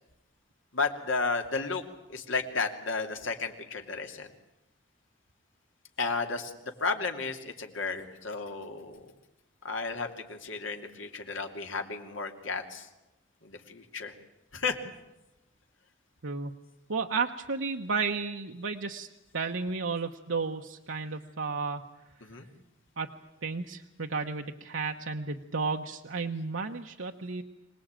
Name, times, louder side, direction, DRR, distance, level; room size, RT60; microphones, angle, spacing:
voice 1, 0.7-1.8 2.1-4.3 6.0-6.5 6.8-9.0 9.6-12.9 13.4-14.1 14.5-14.8 22.2-22.5, left 4 dB, 80° left, 5 dB, 2.7 m, -33 dB
voice 2, 16.9-19.1 19.3-21.8 23.0-27.4, right 4 dB, 85° right, 3 dB, 1.1 m, -33 dB
25.5 x 19.0 x 8.9 m, 0.96 s
head